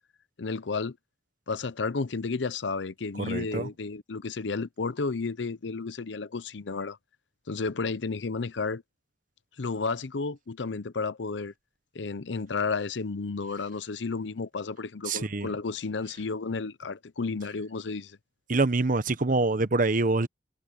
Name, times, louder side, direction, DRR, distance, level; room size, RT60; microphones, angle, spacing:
voice 1, 0.4-1.0 1.5-7.0 7.5-8.8 9.6-11.5 11.9-18.2, left 4 dB, 90° left, 0.7 m, -32 dB
voice 2, 3.2-3.7 15.1-15.5 18.5-20.3, right 3 dB, 50° right, 1.0 m, -25 dB
head